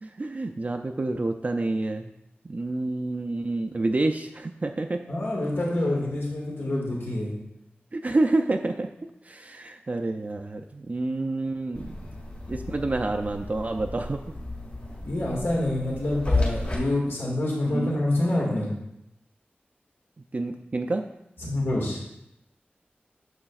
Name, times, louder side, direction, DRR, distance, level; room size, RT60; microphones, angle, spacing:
voice 1, 0.0-2.1 2.4-5.0 7.9-8.9 9.2-12.0 12.5-14.2 17.7-17.9 20.3-21.1, right 2 dB, 40° right, 4 dB, 0.4 m, -28 dB
voice 2, 5.1-7.3 15.0-18.7 21.4-22.0, left 1 dB, 75° left, -3 dB, 1.8 m, -27 dB
sound 1, 11.7-16.8, left 2 dB, 40° left, 1.9 m, -32 dB
8.8 x 6.5 x 2.4 m, 0.84 s
wide cardioid pair, 70°, 4 cm